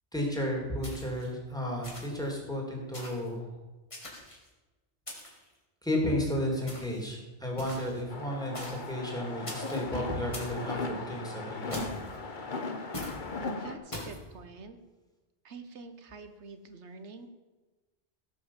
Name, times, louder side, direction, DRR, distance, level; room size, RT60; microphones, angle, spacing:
voice 1, 0.1-3.5 4.0-4.2 5.8-11.9, left 1 dB, 5° left, -1 dB, 3.1 m, -33 dB
sound 1, 0.8-1.3 1.8-2.3 2.9-3.3 3.9-4.5 5.1-5.5 6.7-7.0 7.6-8.0 8.5-8.9 9.5-9.8 10.3-10.6 11.7-12.2 12.9-13.2 13.9-14.2, left 1 dB, 30° left, 2.7 m, -41 dB
sound 2, 8.1-13.8, left 3 dB, 45° left, 1.3 m, -37 dB
voice 2, 13.6-14.8 15.4-17.3, right 4 dB, 85° right, 8 dB, 1.3 m, -46 dB
17.0 x 6.4 x 7.3 m, 1.2 s
omnidirectional pair, 1.1 m